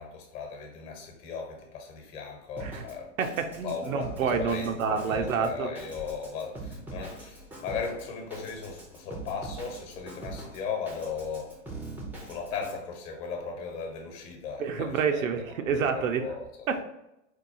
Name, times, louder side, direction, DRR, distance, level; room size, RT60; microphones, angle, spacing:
voice 1, 0.0-3.1 3.6-11.5 12.2-15.2 15.7-16.5, left 5 dB, 45° left, 2 dB, 1.0 m, -37 dB
Drum kit, 2.6-12.8, right 2 dB, 5° right, 0.4 m, -42 dB
voice 2, 3.2-5.7 14.6-16.2 16.7-16.8, right 6 dB, 90° right, 6 dB, 0.7 m, -28 dB
4.6 x 2.3 x 2.6 m, 0.87 s
hypercardioid pair, 130°, 39 cm